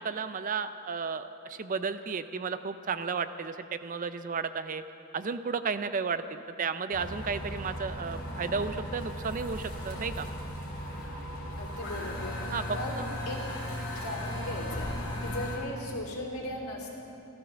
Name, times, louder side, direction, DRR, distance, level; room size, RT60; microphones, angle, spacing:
voice 1, 0.0-4.8 5.1-10.3 12.5-13.1, right 5 dB, 35° right, 11 dB, 0.4 m, -33 dB
sound 1, 6.9-15.6, left 1 dB, 45° left, 3.4 m, -36 dB
voice 2, 11.6-13.0 13.2-13.7 13.9-17.0, left 1 dB, 75° left, -1 dB, 3.0 m, -38 dB
15.5 x 13.5 x 6.8 m, 2.8 s
head